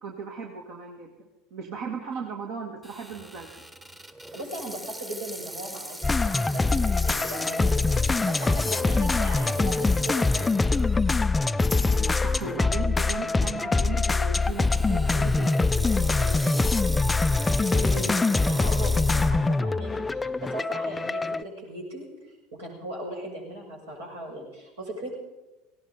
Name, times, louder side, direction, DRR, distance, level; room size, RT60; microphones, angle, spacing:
voice 1, 0.0-3.7 11.8-16.8, right 5 dB, 50° right, 2 dB, 1.7 m, -37 dB
Water tap faucet / Sink (filling or washing), 2.8-11.2 11.7-11.8 12.6-12.8 14.4-19.3, right 1 dB, 15° right, 1.3 m, -39 dB
voice 2, 4.3-7.7 8.0-10.7 17.7-25.1, right 1 dB, 75° right, -3 dB, 6.1 m, -38 dB
sound 1, 6.0-21.4, left 3 dB, 15° left, 0.4 m, -24 dB
18.5 x 17.5 x 4.0 m, 1.0 s
figure-of-eight pair, 75°, 0 cm